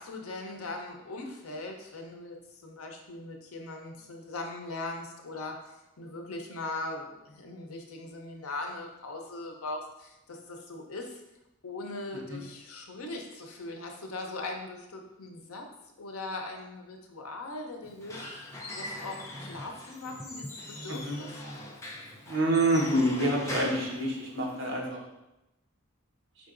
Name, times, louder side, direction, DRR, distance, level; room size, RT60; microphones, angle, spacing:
voice 1, 0.0-11.2 11.6-15.7 16.0-21.4, left 2 dB, 85° left, 2 dB, 0.7 m, -40 dB
Squeak / Wood, 17.8-24.7, left 1 dB, 15° left, 0.5 m, -41 dB
voice 2, 22.3-25.0, right 1 dB, 65° right, -1 dB, 1.0 m, -27 dB
5.0 x 3.8 x 2.5 m, 0.93 s
head